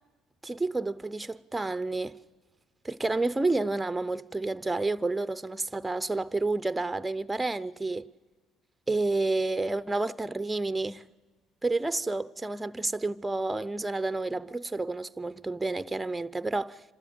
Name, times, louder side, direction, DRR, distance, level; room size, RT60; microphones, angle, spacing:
voice 1, 0.4-2.2 2.8-8.1 8.9-11.0 11.6-16.8, right 2 dB, 10° right, 0.6 m, -30 dB
27.0 x 13.0 x 8.8 m
supercardioid pair, 80°, 0 cm